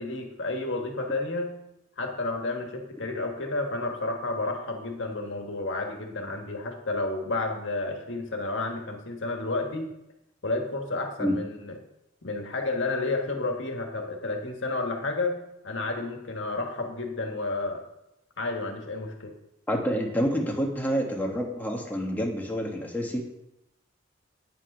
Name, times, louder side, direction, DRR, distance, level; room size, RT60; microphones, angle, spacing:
voice 1, 0.0-1.6 2.0-9.9 10.4-11.8 12.2-17.8 18.4-19.3, left 2 dB, 75° left, 3 dB, 1.6 m, -31 dB
voice 2, 19.7-23.4, equal, 10° left, 0 dB, 1.5 m, -28 dB
9.1 x 6.3 x 5.4 m, 0.84 s
head